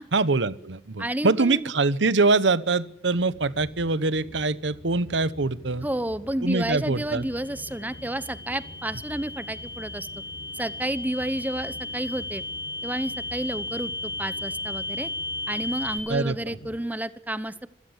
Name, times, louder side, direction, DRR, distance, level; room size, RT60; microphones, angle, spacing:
voice 1, 0.1-5.9 6.4-7.2 16.1-16.6, right 3 dB, 90° right, 17 dB, 1.0 m, -24 dB
voice 2, 1.0-1.7 5.8-10.1 10.5-12.4 12.8-15.1 15.5-17.7, right 1 dB, 10° right, 15 dB, 0.9 m, -31 dB
sound 1, 3.3-16.8, equal, 70° left, 5.5 m, -46 dB
sound 2, 7.1-16.0, left 2 dB, 85° left, 3.5 m, -35 dB
26.0 x 17.0 x 8.2 m, 0.71 s
head